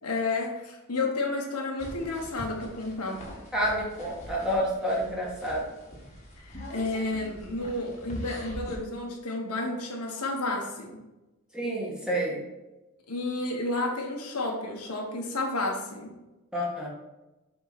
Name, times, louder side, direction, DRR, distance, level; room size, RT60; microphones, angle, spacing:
voice 1, 0.0-3.2 6.4-11.0 13.1-16.1, left 2 dB, 85° left, 0 dB, 1.4 m, -31 dB
sound 1, 1.8-8.8, equal, 30° left, 1.5 m, -43 dB
voice 2, 3.5-5.6 11.5-12.4 16.5-16.9, equal, 5° right, -4 dB, 1.8 m, -29 dB
7.0 x 4.6 x 4.3 m, 1.0 s
head